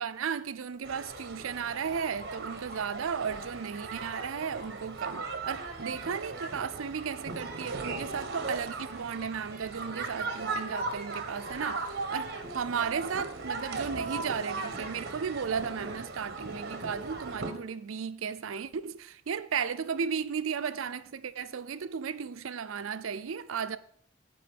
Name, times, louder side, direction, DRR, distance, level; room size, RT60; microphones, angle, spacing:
voice 1, 0.0-23.8, right 6 dB, 90° right, 0.5 m, -35 dB
sound 1, 0.8-17.5, right 3 dB, 55° right, 1.3 m, -37 dB
9.5 x 5.1 x 6.9 m
head